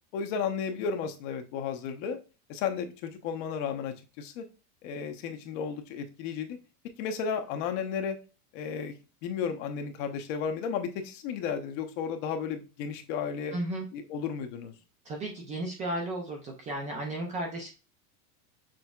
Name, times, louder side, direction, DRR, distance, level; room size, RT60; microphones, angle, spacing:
voice 1, 0.1-2.2 2.5-4.4 4.8-6.6 7.0-8.2 8.5-8.9 9.2-13.6 13.9-14.7, left 6 dB, 55° left, 6 dB, 0.9 m, -33 dB
voice 2, 13.5-13.8 15.0-17.7, right 1 dB, 20° right, 1 dB, 0.3 m, -34 dB
6.3 x 3.4 x 2.3 m, 0.32 s
supercardioid pair, 160°, 45 cm